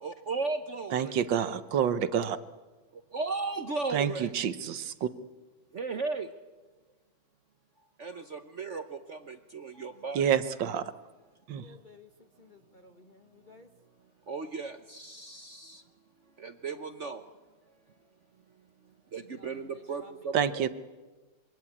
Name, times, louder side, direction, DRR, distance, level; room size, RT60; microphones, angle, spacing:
voice 1, 0.0-1.2 3.1-4.4 5.7-6.3 8.0-10.2 14.3-15.8 16.4-17.2 19.1-20.7, right 4 dB, 50° right, 8 dB, 1.0 m, -35 dB
voice 2, 0.9-2.4 3.9-5.1 10.1-10.8 11.5-11.6 20.3-20.7, right 8 dB, 70° right, 12 dB, 1.6 m, -28 dB
voice 3, 11.6-12.1 12.4-13.7 19.4-19.5 19.7-20.1, left 2 dB, 30° left, 5 dB, 1.0 m, -55 dB
26.0 x 23.0 x 8.6 m, 1.3 s
omnidirectional pair, 2.1 m